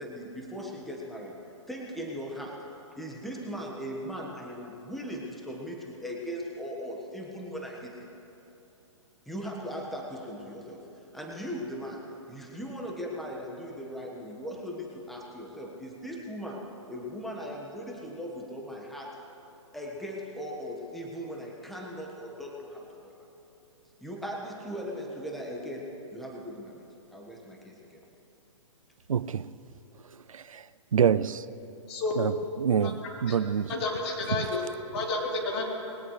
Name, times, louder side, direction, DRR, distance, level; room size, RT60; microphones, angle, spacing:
voice 1, 0.0-1.4 1.7-2.6 2.9-8.1 9.3-19.1 19.7-23.2 24.0-28.0, equal, ahead, 1.4 m, -39 dB
voice 2, 29.1-29.5 30.3-30.6 30.9-31.4 32.2-33.0 33.2-33.7 34.3-34.5, right 8 dB, 90° right, 0.5 m, -26 dB
voice 3, 33.7-35.6, left 3 dB, 55° left, 3.8 m, -31 dB
21.5 x 17.5 x 3.3 m
hypercardioid pair, 135°, 17 cm